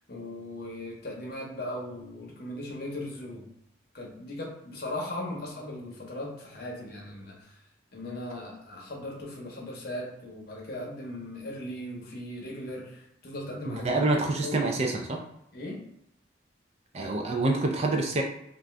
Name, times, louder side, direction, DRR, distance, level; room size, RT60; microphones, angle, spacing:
voice 1, 0.1-3.5 3.9-7.6 7.9-14.0 14.4-14.7 15.5-15.8, left 1 dB, 50° left, -1 dB, 0.8 m, -38 dB
voice 2, 13.6-15.2 16.9-18.2, right 2 dB, 35° right, 2 dB, 0.3 m, -27 dB
2.5 x 2.3 x 3.2 m, 0.77 s
head